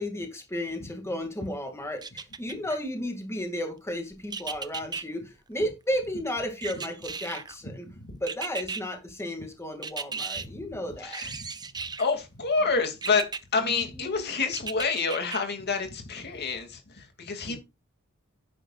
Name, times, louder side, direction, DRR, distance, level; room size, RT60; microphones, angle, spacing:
voice 1, 0.0-7.9 8.2-11.2 13.6-14.3 17.5-17.6, equal, 10° left, 2.2 m, -33 dB
sound 1, 2.0-2.8 4.3-5.0 6.6-7.6 8.3-8.8 9.8-10.5 11.1-12.1 13.0-13.4 14.5-15.4 15.9-16.0, right 5 dB, 20° right, 0.8 m, -35 dB
voice 2, 11.0-11.5 12.0-17.6, left 4 dB, 50° left, 2.5 m, -28 dB
10.5 x 10.0 x 2.4 m
head